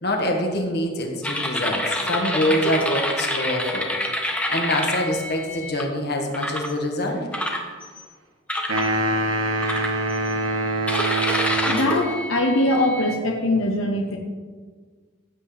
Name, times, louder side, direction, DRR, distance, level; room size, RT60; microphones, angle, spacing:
voice 1, 0.0-3.9 4.5-7.3, left 1 dB, 50° left, 2 dB, 1.7 m, -25 dB
sound 1, 1.2-5.8 6.3-6.7 7.3-8.1 8.5-8.9 9.6-10.3 10.9-13.2, left 1 dB, 5° left, 0.9 m, -27 dB
sound 2, 8.7-12.0, right 2 dB, 70° right, 1.4 m, -24 dB
voice 2, 11.6-14.2, left 1 dB, 80° left, 1 dB, 1.0 m, -22 dB
15.5 x 8.5 x 3.4 m, 1.5 s
head